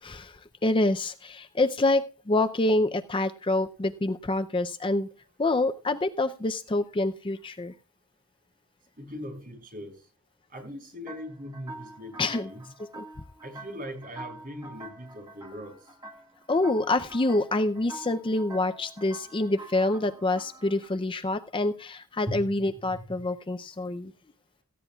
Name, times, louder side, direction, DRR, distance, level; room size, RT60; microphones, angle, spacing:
voice 1, 0.0-5.1 5.4-7.7 12.2-12.5 13.0-13.1 16.5-24.1, left 2 dB, 25° left, 9 dB, 0.5 m, -27 dB
voice 2, 9.0-9.9 10.5-12.6 13.4-15.7 22.3-23.2, equal, 40° right, 2 dB, 7.2 m, -40 dB
sound 1, 11.1-21.0, right 2 dB, 20° right, 1.7 m, -46 dB
18.0 x 15.0 x 2.3 m, 0.35 s
head